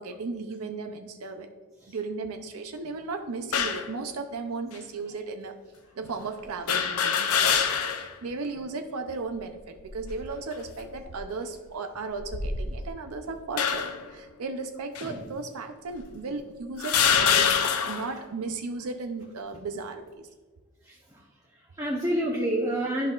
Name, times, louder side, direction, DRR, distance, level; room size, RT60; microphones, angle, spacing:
voice 1, 0.0-1.5 1.9-5.5 6.0-20.3, right 3 dB, 75° right, 6 dB, 0.5 m, -36 dB
sound 1, 3.5-3.9 4.7-4.8 6.7-8.1 8.6-8.7 9.8-10.2 10.9-11.2 12.1-12.9 13.6-14.1 14.9-15.1 16.0-16.1 16.8-18.1, left 7 dB, 85° left, 0.6 m, -25 dB
voice 2, 20.8-23.1, right 1 dB, 15° right, -2 dB, 0.7 m, -30 dB
11.0 x 5.5 x 2.4 m, 1.4 s
head